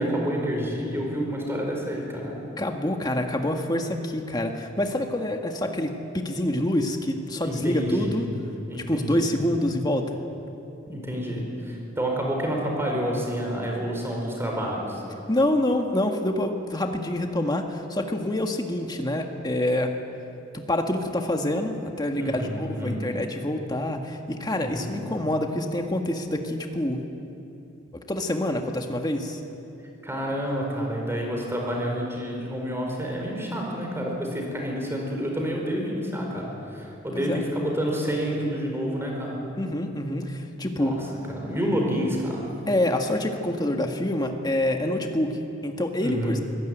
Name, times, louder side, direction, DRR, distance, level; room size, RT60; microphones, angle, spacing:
voice 1, 0.0-2.4 7.4-8.3 8.7-9.3 10.9-15.0 22.2-23.0 24.6-24.9 30.0-39.4 40.7-40.9 41.4-42.4 46.0-46.3, equal, 15° right, 0 dB, 4.8 m, -29 dB
voice 2, 2.6-8.3 8.7-10.2 15.3-19.9 20.5-27.0 28.1-29.4 37.1-37.4 39.6-41.0 42.7-46.4, left 1 dB, 20° left, 3 dB, 1.8 m, -26 dB
24.5 x 16.5 x 9.2 m, 2.9 s
head